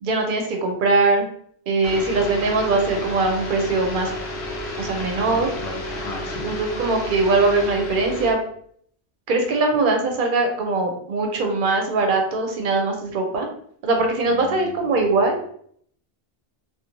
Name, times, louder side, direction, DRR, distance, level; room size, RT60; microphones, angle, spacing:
voice 1, 0.0-1.3 1.7-4.1 4.8-5.5 6.4-8.4 9.3-13.5 13.8-15.4, right 3 dB, 60° right, 3 dB, 0.7 m, -21 dB
sound 1, 1.8-8.3, left 1 dB, 85° left, 0.9 m, -31 dB
voice 2, 5.2-6.5 14.3-15.2, left 4 dB, 45° left, 2 dB, 0.6 m, -37 dB
2.5 x 2.3 x 2.9 m, 0.63 s
omnidirectional pair, 1.0 m